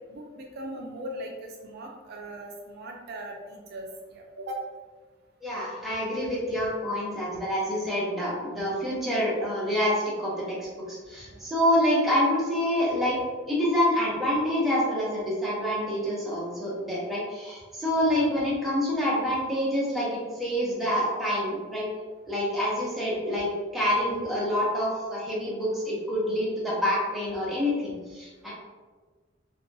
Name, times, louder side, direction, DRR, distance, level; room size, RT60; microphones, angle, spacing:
voice 1, 0.1-4.7 11.3-11.4, right 1 dB, 55° right, 1 dB, 0.3 m, -39 dB
voice 2, 5.4-13.2 13.5-21.9 22.3-28.5, equal, ahead, -7 dB, 0.7 m, -27 dB
2.7 x 2.2 x 2.6 m, 1.4 s
head